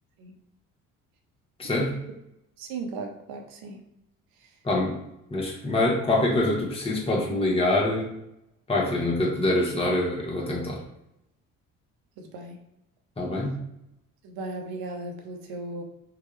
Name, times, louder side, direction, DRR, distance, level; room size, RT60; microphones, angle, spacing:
voice 1, 1.6-2.0 4.6-5.0 5.3-8.1 8.7-10.8 13.2-13.6, left 2 dB, 15° left, -2 dB, 1.0 m, -25 dB
voice 2, 2.6-3.8 12.2-12.6 14.2-15.8, right 3 dB, 60° right, 3 dB, 0.8 m, -36 dB
4.7 x 2.3 x 3.0 m, 0.85 s
figure-of-eight pair, 50°, 42 cm